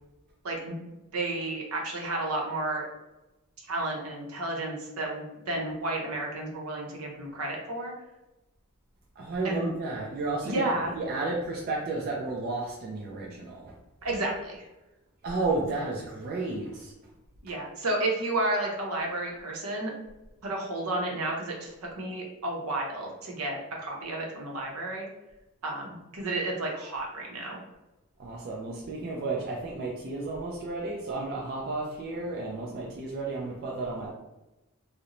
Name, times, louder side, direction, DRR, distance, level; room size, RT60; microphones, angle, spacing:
voice 1, 1.1-2.9 3.7-7.9 9.4-9.8 10.4-11.0 14.0-14.7 17.4-19.9 20.4-25.1 25.6-27.6, right 2 dB, 75° right, -1 dB, 0.6 m, -32 dB
voice 2, 9.2-10.5 11.0-13.6 15.2-16.9 28.2-34.1, right 3 dB, 45° right, -2 dB, 0.3 m, -32 dB
2.5 x 2.0 x 2.9 m, 1.0 s
head